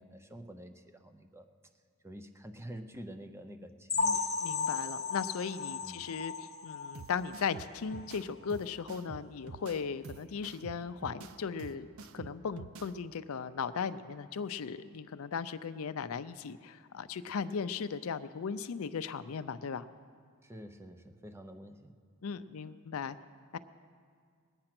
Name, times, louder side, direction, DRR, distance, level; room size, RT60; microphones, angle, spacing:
voice 1, 0.0-1.5 2.0-4.2 5.8-6.0 20.4-22.0, equal, 10° right, 7 dB, 0.6 m, -48 dB
sound 1, 3.9-7.5 7.9-8.1 8.4-8.5 9.0-9.1, left 4 dB, 30° left, 1.0 m, -35 dB
voice 2, 4.4-11.9 12.1-19.8 22.2-23.2 23.5-23.6, left 6 dB, 75° left, 12 dB, 0.5 m, -37 dB
sound 2, 6.9-12.9, right 4 dB, 75° right, 0.5 m, -48 dB
20.5 x 8.8 x 5.9 m, 2.1 s
head